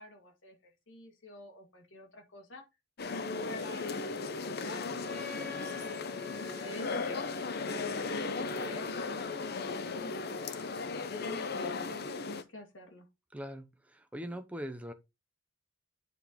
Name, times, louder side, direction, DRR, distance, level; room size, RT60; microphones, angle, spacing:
voice 1, 0.0-2.6 3.4-7.2 7.7-10.3 11.1-13.1, left 1 dB, 75° left, 1.8 m, -48 dB
sound 1, 3.0-12.4, left 4 dB, 55° left, 0.7 m, -36 dB
Wind instrument woodwind instrument, 5.0-10.7, left 7 dB, 10° left, 1.0 m, -49 dB
voice 2, 13.3-14.9, equal, 5° right, 0.9 m, -41 dB
9.4 x 4.5 x 3.7 m
head